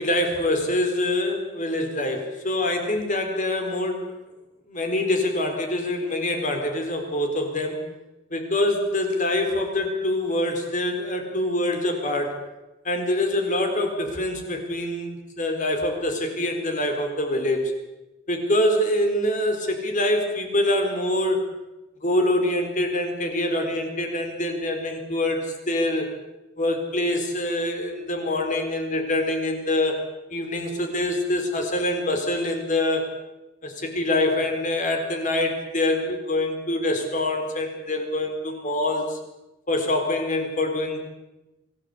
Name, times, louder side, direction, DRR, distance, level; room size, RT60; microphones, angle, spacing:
voice 1, 0.0-4.1 4.7-7.8 8.3-12.4 12.8-17.7 18.3-21.4 22.0-26.1 26.6-30.0 30.3-33.1 33.6-39.2 39.7-41.0, left 1 dB, 40° left, 4 dB, 4.2 m, -25 dB
24.5 x 17.0 x 8.3 m, 1.0 s
head